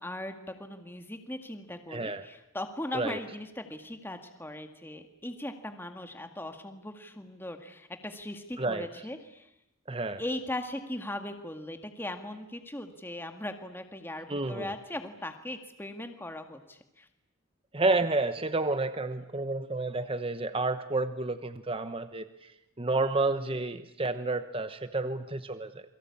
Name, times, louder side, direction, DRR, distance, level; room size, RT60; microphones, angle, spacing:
voice 1, 0.0-9.5 10.2-17.1, left 1 dB, 10° left, 6 dB, 2.0 m, -39 dB
voice 2, 1.9-2.3 2.9-3.2 8.6-8.9 9.9-10.2 14.3-14.7 17.7-22.5 22.8-25.8, right 2 dB, 25° right, 11 dB, 1.0 m, -30 dB
28.5 x 23.5 x 8.6 m, 0.82 s
head